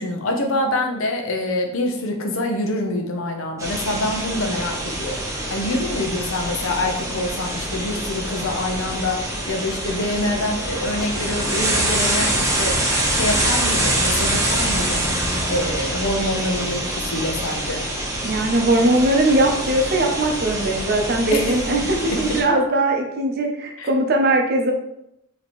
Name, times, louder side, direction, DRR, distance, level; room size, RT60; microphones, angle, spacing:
voice 1, 0.0-5.2 5.5-12.8 13.1-15.0 15.5-17.8 21.3-21.6 22.1-22.2 23.8-23.9, left 1 dB, 80° left, 3 dB, 0.7 m, -25 dB
sound 1, 3.6-22.4, right 1 dB, 15° right, 0.8 m, -25 dB
voice 2, 18.2-24.7, right 1 dB, 50° right, 2 dB, 0.6 m, -20 dB
4.2 x 2.9 x 3.0 m, 0.81 s
head